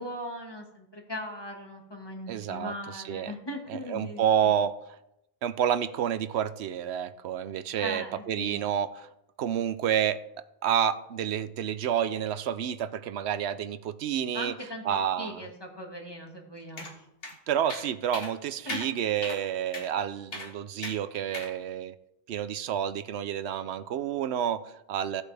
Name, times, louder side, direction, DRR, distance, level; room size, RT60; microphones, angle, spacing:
voice 1, 0.0-4.5 7.8-8.6 14.3-14.8 15.2-17.1 18.6-18.9, left 1 dB, 25° left, 0 dB, 1.9 m, -39 dB
voice 2, 2.3-3.3 3.7-4.7 5.4-9.1 9.4-10.2 10.6-14.5 14.9-15.4 17.5-21.9 22.3-25.2, right 9 dB, 85° right, 13 dB, 0.9 m, -29 dB
sound 1, 16.8-16.9 17.2-17.3 17.7-17.9 18.1-18.3 18.7-18.9 19.2-19.4 19.7-19.9 20.3-20.5 20.8-21.0 21.3-21.5, left 2 dB, 65° left, 1.9 m, -37 dB
15.5 x 8.2 x 3.4 m, 0.84 s
omnidirectional pair, 1.1 m